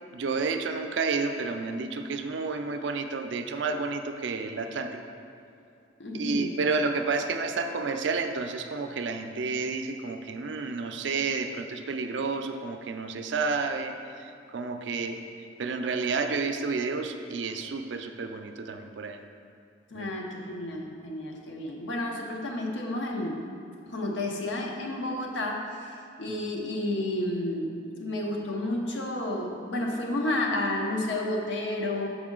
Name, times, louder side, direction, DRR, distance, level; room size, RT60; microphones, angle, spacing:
voice 1, 0.1-5.0 6.1-13.9 14.5-15.2 15.6-19.2 19.9-20.1 26.3-26.4, right 4 dB, 75° right, 7 dB, 0.4 m, -30 dB
voice 2, 6.0-6.5 19.9-23.4 23.9-25.8 26.2-32.1, left 1 dB, 75° left, 1 dB, 0.7 m, -31 dB
6.2 x 5.0 x 3.7 m, 2.4 s
head